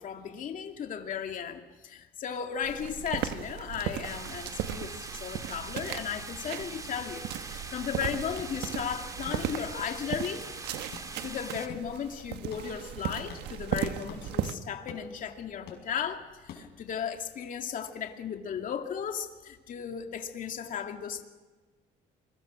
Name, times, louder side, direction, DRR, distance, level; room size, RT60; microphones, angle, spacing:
voice 1, 0.0-10.5 11.2-21.2, left 8 dB, 50° left, 4 dB, 2.4 m, -36 dB
sound 1, 2.6-14.5, right 11 dB, 85° right, 1.4 m, -37 dB
sound 2, 4.0-11.7, right 3 dB, 20° right, 2.4 m, -43 dB
sound 3, 7.9-17.0, left 8 dB, 75° left, 5.6 m, -51 dB
27.5 x 23.0 x 6.4 m, 1.3 s
cardioid pair, 110°, 17 cm